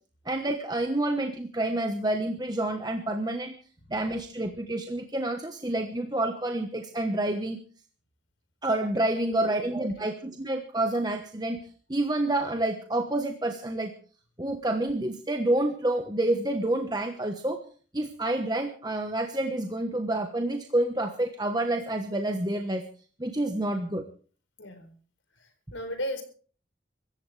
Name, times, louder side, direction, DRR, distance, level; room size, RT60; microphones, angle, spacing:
voice 1, 0.2-3.6 3.9-7.6 8.6-11.6 11.9-13.9 14.4-17.6 17.9-22.8 23.2-24.1, right 1 dB, 20° right, 5 dB, 1.2 m, -28 dB
voice 2, 9.4-9.7 10.0-10.1 24.6-24.9 25.3-26.2, equal, 85° left, 7 dB, 4.5 m, -36 dB
25.5 x 14.5 x 3.3 m, 0.42 s
head